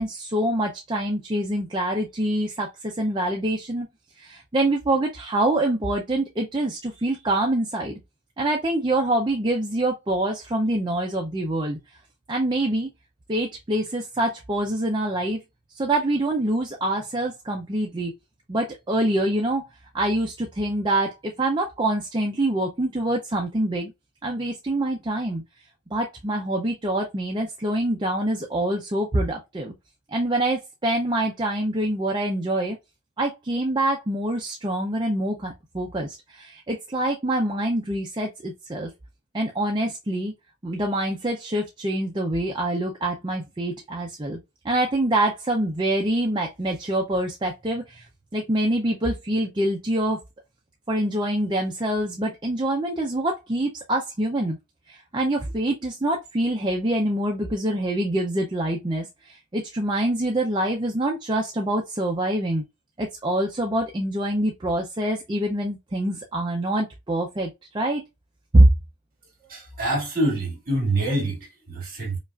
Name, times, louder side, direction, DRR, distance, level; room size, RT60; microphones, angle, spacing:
voice 1, 0.0-3.9 4.2-8.0 8.4-11.8 12.3-12.9 13.3-15.4 15.7-18.1 18.5-19.6 19.9-23.9 24.2-25.4 25.9-29.7 30.1-32.8 33.2-38.9 39.3-40.3 40.6-44.4 44.6-48.1 48.3-50.2 50.9-54.6 54.9-62.6 63.0-68.0 68.5-68.7, right 1 dB, 20° right, 0.4 m, -25 dB
voice 2, 69.5-72.2, right 1 dB, 40° right, 2.0 m, -26 dB
5.1 x 2.4 x 2.3 m
head